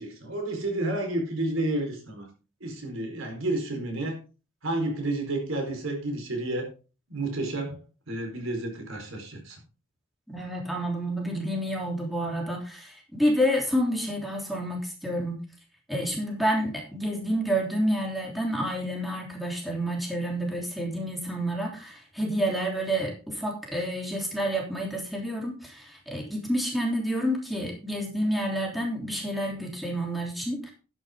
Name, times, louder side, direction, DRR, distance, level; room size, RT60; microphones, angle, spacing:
voice 1, 0.0-2.3 2.6-4.2 4.6-6.7 7.1-7.8 8.1-9.6, right 2 dB, 75° right, 4.4 m, -30 dB
voice 2, 10.3-15.4 15.9-30.7, equal, ahead, 3.2 m, -29 dB
11.5 x 10.0 x 3.7 m
head